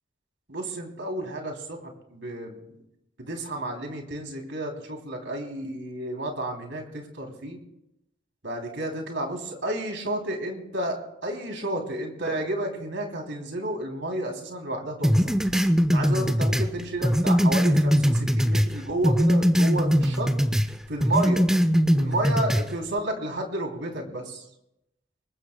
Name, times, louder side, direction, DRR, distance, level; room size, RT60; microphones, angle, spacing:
voice 1, 0.5-2.8 3.2-7.6 8.4-15.3 15.9-20.3 20.9-21.4 21.9-24.4, right 1 dB, 65° right, 2 dB, 3.0 m, -31 dB
sound 1, 15.0-18.7 19.0-20.7 21.0-22.7, equal, 5° right, 0.4 m, -21 dB
25.0 x 21.5 x 2.2 m, 0.87 s
head